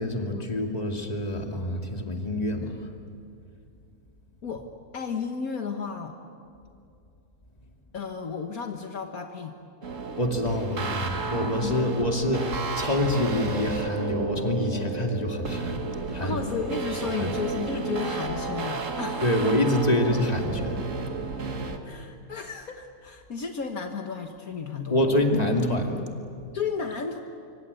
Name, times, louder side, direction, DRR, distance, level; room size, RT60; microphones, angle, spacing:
voice 1, 0.0-2.9 10.2-15.9 16.1-16.4 17.2-17.3 19.2-20.8 24.9-26.0, left 1 dB, 25° left, 2 dB, 2.6 m, -26 dB
voice 2, 4.9-6.2 7.9-9.6 11.6-11.9 16.2-19.3 21.8-25.0 26.5-27.2, left 5 dB, 65° left, 4 dB, 1.8 m, -33 dB
sound 1, 9.8-21.8, right 4 dB, 55° right, 2.1 m, -32 dB
25.5 x 25.0 x 8.3 m, 2.5 s
omnidirectional pair, 1.7 m